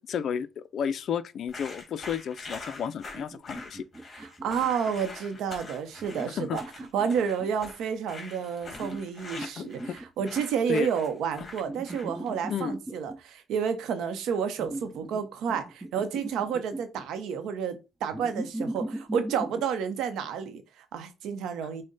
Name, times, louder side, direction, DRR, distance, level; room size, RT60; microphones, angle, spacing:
voice 1, 0.1-3.8 6.3-6.6 9.6-10.0 10.7-10.9 12.5-12.8, left 8 dB, 65° left, 0.4 m, -32 dB
sound 1, 1.5-12.3, left 3 dB, 35° left, 1.7 m, -44 dB
sound 2, 3.1-4.9 6.0-7.7 8.7-10.6 11.7-13.2 14.6-15.2 15.5-17.0 18.1-19.7, right 1 dB, 20° right, 0.7 m, -38 dB
voice 2, 4.2-6.6 6.9-9.8 10.2-21.8, right 7 dB, 85° right, 0.7 m, -30 dB
6.3 x 2.1 x 3.9 m
cardioid pair, 90°, 0 cm